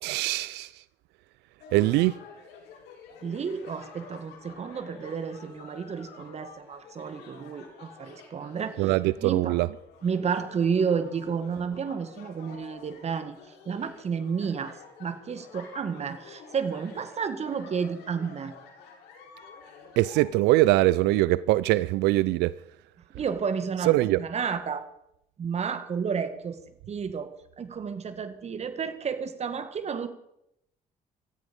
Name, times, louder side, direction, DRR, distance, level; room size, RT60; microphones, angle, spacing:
voice 1, 0.0-0.8 1.7-2.2 8.8-9.7 20.0-22.5 23.9-24.2, right 17 dB, 90° right, 18 dB, 0.5 m, -22 dB
sound 1, 1.6-20.3, left 5 dB, 80° left, 6.4 m, -49 dB
voice 2, 3.2-9.6 10.0-13.4 13.7-18.5 23.1-24.8 25.4-26.6 26.9-27.3 27.6-30.1, right 6 dB, 40° right, 11 dB, 1.9 m, -31 dB
17.0 x 13.5 x 5.3 m, 0.78 s
cardioid pair, 110°, 17 cm